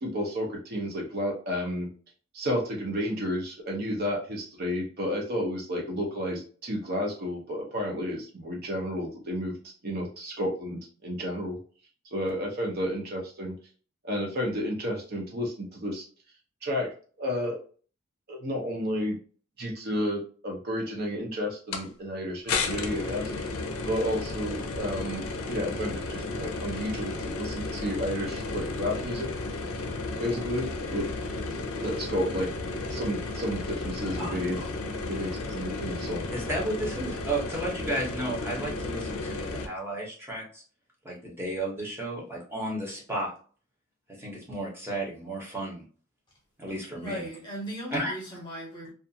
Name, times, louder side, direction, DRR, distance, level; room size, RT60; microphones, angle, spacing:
voice 1, 0.0-1.9 2.3-9.5 9.8-11.6 12.1-13.5 14.0-16.1 16.6-16.9 17.2-17.6 18.3-19.2 19.6-23.3 23.9-29.3 30.2-31.1 31.8-32.5 32.9-34.6 35.1-36.2, equal, 45° right, 0.6 m, -31 dB
sound 1, 21.7-21.8 22.5-39.7, left 3 dB, 75° left, 0.5 m, -33 dB
voice 2, 34.1-34.6 36.3-40.6 41.0-43.3 44.1-45.8 46.6-47.3 47.9-48.1, right 1 dB, 10° right, 0.8 m, -33 dB
voice 3, 46.9-48.9, equal, 20° left, 0.9 m, -37 dB
2.4 x 2.4 x 2.6 m
head